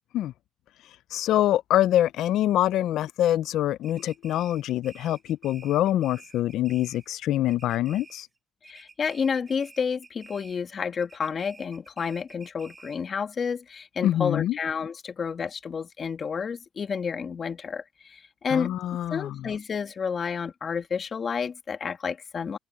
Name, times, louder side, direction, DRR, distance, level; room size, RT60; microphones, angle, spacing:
voice 1, 1.1-8.3 14.0-14.6 18.5-19.4, left 13 dB, 85° left, 0.4 m, -25 dB
sound 1, 3.8-7.2 7.5-8.4 8.6-10.7 11.0-13.1, right 3 dB, 25° right, 5.1 m, -51 dB
voice 2, 8.6-18.8 19.1-22.6, left 6 dB, 45° left, 2.2 m, -30 dB
open air
cardioid pair, 90°, 0 cm